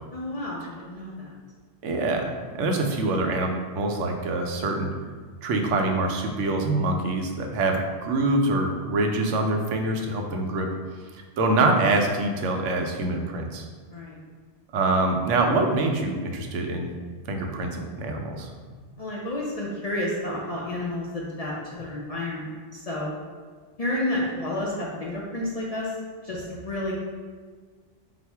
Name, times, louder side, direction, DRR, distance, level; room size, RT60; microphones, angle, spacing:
voice 1, 0.1-1.3 13.9-14.2 19.0-23.1 23.8-25.9 26.2-26.9, left 1 dB, 45° left, -6 dB, 0.5 m, -30 dB
voice 2, 1.8-4.9 5.4-10.7 11.4-13.6 14.7-16.9 17.3-18.5, right 2 dB, 80° right, 3 dB, 0.9 m, -25 dB
4.1 x 2.0 x 4.4 m, 1.5 s
omnidirectional pair, 1.2 m